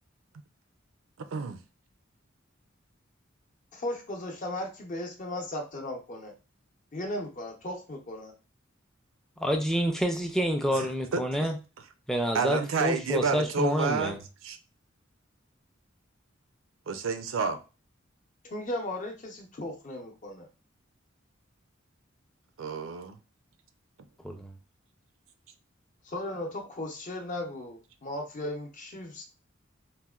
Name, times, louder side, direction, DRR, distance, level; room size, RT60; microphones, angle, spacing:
voice 1, 1.2-1.6 10.7-11.5 12.3-14.6 16.9-17.6 22.6-23.2, right 4 dB, 90° right, 0.4 m, -30 dB
voice 2, 3.7-6.3 6.9-8.3 18.4-20.5 26.0-29.2, left 1 dB, 40° left, 0.6 m, -36 dB
voice 3, 9.4-11.6 12.1-14.2 24.2-24.6, equal, ahead, 0.4 m, -28 dB
4.0 x 2.1 x 2.3 m
head